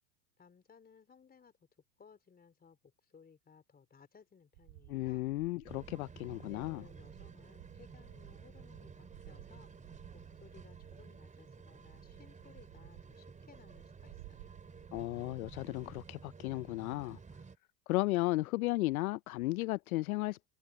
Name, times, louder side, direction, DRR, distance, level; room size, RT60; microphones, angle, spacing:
voice 1, 0.4-1.7 2.0-5.3 6.2-9.7 10.1-14.5, left 6 dB, 20° left, 4.1 m, -61 dB
sound 1, 4.5-16.1, right 30 dB, 60° right, 2.1 m, -57 dB
voice 2, 4.9-6.8 14.9-17.2 17.9-20.5, left 19 dB, 70° left, 0.7 m, -34 dB
sound 2, 5.6-17.6, right 5 dB, 15° right, 4.1 m, -53 dB
hypercardioid pair, 100°, 45 cm